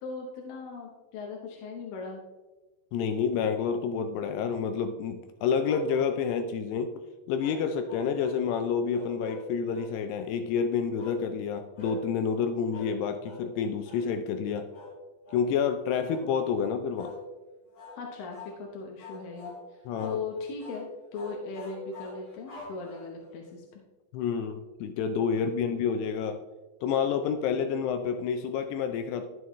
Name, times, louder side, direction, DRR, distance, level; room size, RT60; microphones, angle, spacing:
voice 1, 0.0-2.2 17.9-20.9 21.1-23.8, left 4 dB, 75° left, 0 dB, 2.1 m, -39 dB
voice 2, 2.9-6.9 7.3-14.7 15.3-17.1 19.9-20.2 24.1-26.4 26.8-29.3, left 6 dB, 90° left, 8 dB, 2.3 m, -29 dB
sound 1, 5.6-6.4 7.4-8.4 8.9-9.9 11.0-11.2 11.7-12.0 12.7-13.0 13.2-13.5 13.8-14.1 14.7-15.0 15.2-15.5 16.1-16.3 17.0-17.2 17.7-18.0 18.3-18.6 19.0-19.6 20.0-20.2 20.6-20.8 21.1-23.3, left 2 dB, 35° left, 4.1 m, -44 dB
12.5 x 7.7 x 3.1 m, 1.2 s
omnidirectional pair, 5.4 m